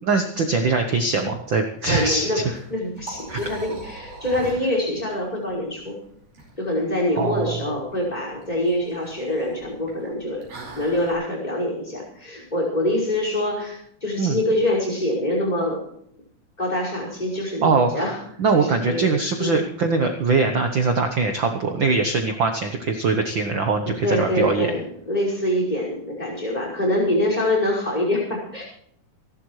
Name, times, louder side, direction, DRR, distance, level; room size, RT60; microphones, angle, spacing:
voice 1, 0.0-2.3 3.3-3.5 7.2-7.6 14.2-14.4 17.3-18.0 18.4-24.7, right 4 dB, 60° right, 5 dB, 1.2 m, -22 dB
voice 2, 1.9-6.0 6.6-10.5 10.8-15.8 16.6-18.2 18.6-19.1 19.4-19.6 24.0-28.6, left 1 dB, 10° left, -2 dB, 5.3 m, -25 dB
Liquid, 2.4-11.1, right 3 dB, 80° right, 6.4 m, -42 dB
28.0 x 12.0 x 3.2 m, 0.69 s
omnidirectional pair, 3.6 m